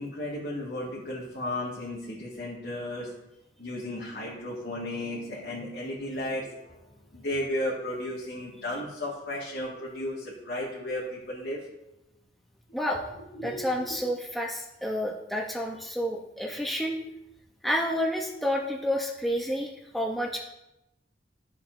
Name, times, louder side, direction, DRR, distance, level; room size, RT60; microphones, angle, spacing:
voice 1, 0.0-3.1 3.6-6.8 7.1-11.6 13.3-13.7, left 1 dB, 70° left, -6 dB, 1.8 m, -34 dB
voice 2, 13.4-17.0 17.6-20.4, equal, ahead, -1 dB, 0.7 m, -30 dB
13.0 x 7.2 x 2.6 m, 0.90 s
head